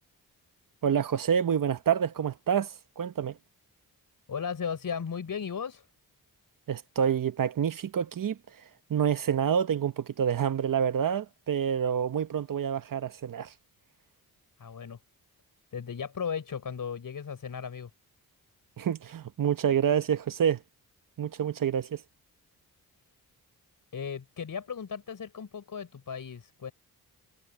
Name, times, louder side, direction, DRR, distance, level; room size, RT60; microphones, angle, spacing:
voice 1, 0.8-3.4 6.7-8.4 8.9-13.5 18.8-20.6 21.2-22.0, right 8 dB, 60° right, 1.1 m, -27 dB
voice 2, 4.3-5.8 14.6-15.0 15.7-17.9 23.9-26.7, left 7 dB, 60° left, 4.8 m, -36 dB
cardioid pair, 75°, 38 cm